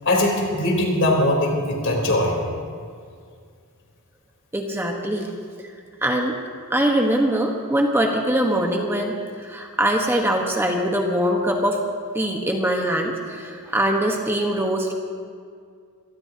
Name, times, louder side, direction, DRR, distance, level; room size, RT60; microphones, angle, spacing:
voice 1, 0.0-2.4, left 1 dB, 60° left, -1 dB, 3.8 m, -21 dB
voice 2, 4.5-5.3 5.6-5.7 6.0-6.4 6.7-11.8 12.1-14.9, right 1 dB, 10° right, 1 dB, 1.2 m, -22 dB
25.5 x 19.0 x 2.9 m, 2.2 s
head